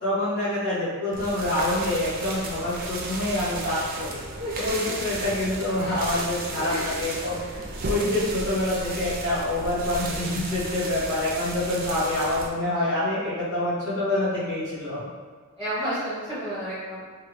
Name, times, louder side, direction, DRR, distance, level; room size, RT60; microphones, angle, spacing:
voice 1, 0.0-4.2 4.6-7.4 7.8-15.0, left 1 dB, 60° left, -14 dB, 1.2 m, -26 dB
sound 1, 1.1-12.5, right 2 dB, 40° right, 0.4 m, -34 dB
voice 2, 5.8-6.2 6.6-7.5 15.6-17.0, equal, 10° left, -13 dB, 0.9 m, -33 dB
3.4 x 2.3 x 3.2 m, 1.5 s
head